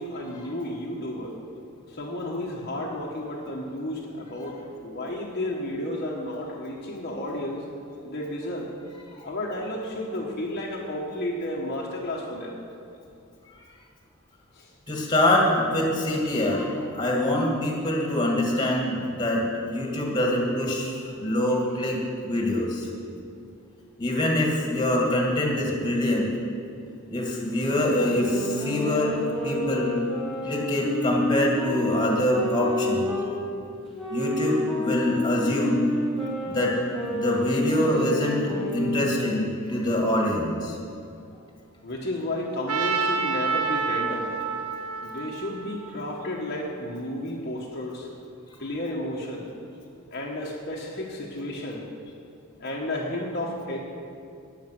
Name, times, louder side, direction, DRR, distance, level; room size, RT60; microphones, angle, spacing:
voice 1, 0.0-1.4 1.9-7.6 8.0-8.7 9.2-12.6 14.5-14.7 41.8-44.3 45.0-48.1 48.6-49.5 50.1-51.8 52.6-53.8, left 1 dB, 45° left, -3 dB, 1.4 m, -32 dB
voice 2, 14.9-22.9 24.0-26.3 27.1-29.2 29.4-29.9 30.4-33.1 34.1-35.9 36.5-36.7 37.1-40.8, left 1 dB, 20° left, -2 dB, 2.3 m, -25 dB
sound 1, 27.8-33.3 33.9-39.1, left 2 dB, ahead, 2.7 m, -30 dB
Trumpet, 42.7-46.7, right 5 dB, 80° right, 1.1 m, -29 dB
18.0 x 7.2 x 6.1 m, 2.6 s
head